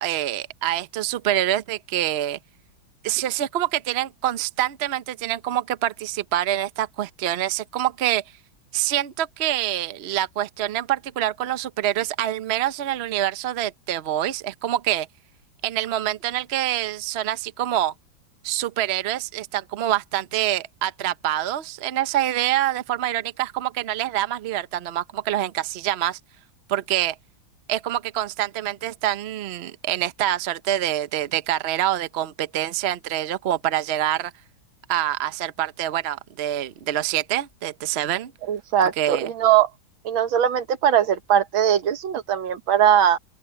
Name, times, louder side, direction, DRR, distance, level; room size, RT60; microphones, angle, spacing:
voice 1, 0.0-2.4 3.0-8.2 8.7-15.1 15.6-17.9 18.4-26.2 26.7-27.1 27.7-34.3 34.9-38.3 38.8-39.3, right 12 dB, 60° right, 0.6 m, -26 dB
voice 2, 38.5-39.7 40.1-43.2, right 9 dB, 85° right, 2.0 m, -20 dB
open air
omnidirectional pair, 2.2 m